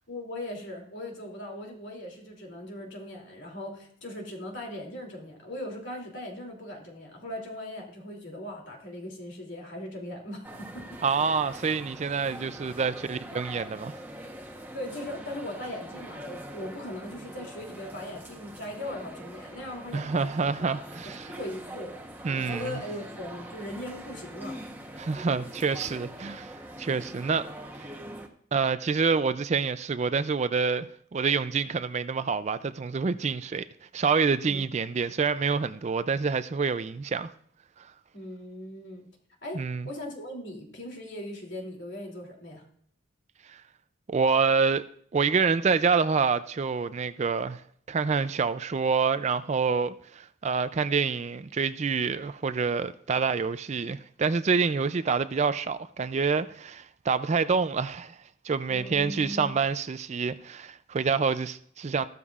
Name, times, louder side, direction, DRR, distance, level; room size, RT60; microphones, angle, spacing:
voice 1, 0.1-11.0 14.7-20.7 21.0-21.9 22.3-24.6 34.4-34.6 38.1-39.1 39.4-42.6 58.7-59.6, left 1 dB, 60° left, 2.8 m, -39 dB
sound 1, 10.4-28.3, right 1 dB, 10° right, 1.0 m, -43 dB
voice 2, 11.0-14.0 19.9-21.3 22.2-22.8 25.0-26.5 26.8-27.5 28.5-30.9 31.1-33.7 33.9-37.3 39.5-39.9 43.5-43.6 44.1-44.8 45.1-47.6 47.9-58.2 58.4-62.1, right 5 dB, 35° right, 0.3 m, -27 dB
15.0 x 12.5 x 2.4 m
head